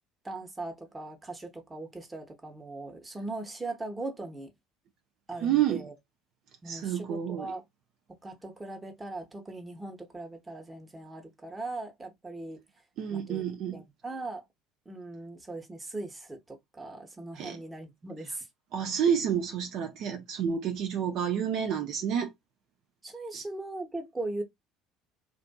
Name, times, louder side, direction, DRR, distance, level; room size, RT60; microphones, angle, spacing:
voice 1, 0.2-4.5 5.3-6.0 6.6-7.6 8.1-12.6 13.1-13.5 13.7-14.4 14.9-18.5 23.0-24.4, right 2 dB, 15° right, 0.9 m, -39 dB
voice 2, 5.4-5.9 6.7-7.5 13.0-13.8 17.4-17.6 18.7-22.3 23.3-23.4, right 8 dB, 55° right, 0.4 m, -29 dB
2.5 x 2.4 x 2.3 m
hypercardioid pair, 65°, 0 cm